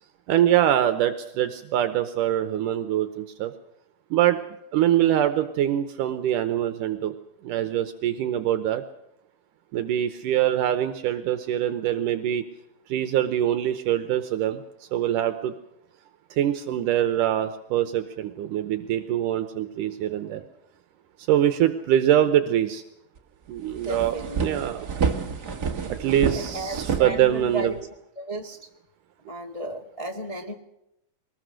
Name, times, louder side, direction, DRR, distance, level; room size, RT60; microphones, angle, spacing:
voice 1, 0.3-3.5 4.1-4.4 4.7-7.1 7.4-8.8 9.7-12.4 12.9-14.6 14.9-15.5 16.3-20.4 21.3-22.8 23.5-24.9 25.9-27.8, right 11 dB, 75° right, 9 dB, 2.4 m, -24 dB
sound 1, 23.2-23.3 23.6-27.8, right 5 dB, 40° right, 1.7 m, -29 dB
voice 2, 23.8-24.4 26.3-27.7 28.2-28.6 29.3-30.5, right 1 dB, 50° left, 1 dB, 0.4 m, -33 dB
22.5 x 20.0 x 6.5 m, 0.85 s
omnidirectional pair, 3.9 m